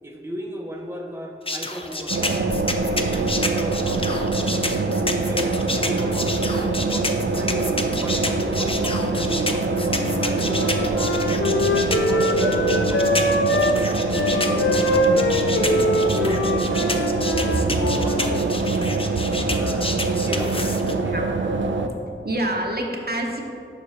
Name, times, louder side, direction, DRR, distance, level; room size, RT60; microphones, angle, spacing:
voice 1, 0.0-2.4 2.9-4.5 5.1-7.7 8.0-10.8 11.4-13.4 14.0-16.9 17.4-18.8 19.4-21.1, equal, 10° right, 0 dB, 0.7 m, -35 dB
sound 1, 1.5-20.9, left 2 dB, 30° left, 0.5 m, -29 dB
sound 2, 2.1-21.9, right 3 dB, 70° right, 0.4 m, -24 dB
Wind instrument woodwind instrument, 9.9-13.8 14.1-18.4, left 1 dB, 85° left, 0.5 m, -23 dB
voice 2, 10.6-11.0 12.4-12.5 13.6-13.7 17.3-17.4 19.1-19.2 21.1-21.2 22.2-23.4, right 1 dB, 50° right, 1 dB, 0.9 m, -28 dB
6.7 x 5.3 x 4.2 m, 2.5 s
wide cardioid pair, 50°, 20 cm